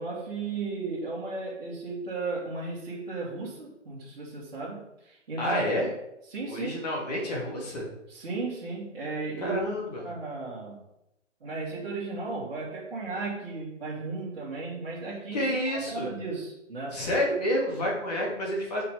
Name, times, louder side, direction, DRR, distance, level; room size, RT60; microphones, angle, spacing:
voice 1, 0.0-5.7 6.3-6.8 8.1-9.8 10.0-10.8 11.4-17.0, right 3 dB, 50° right, -8 dB, 2.5 m, -35 dB
voice 2, 5.4-5.9 6.5-7.9 9.4-10.0 15.3-16.1 16.9-18.8, equal, 30° left, -3 dB, 2.4 m, -29 dB
5.8 x 5.2 x 5.0 m, 0.85 s
hypercardioid pair, 160°, 38 cm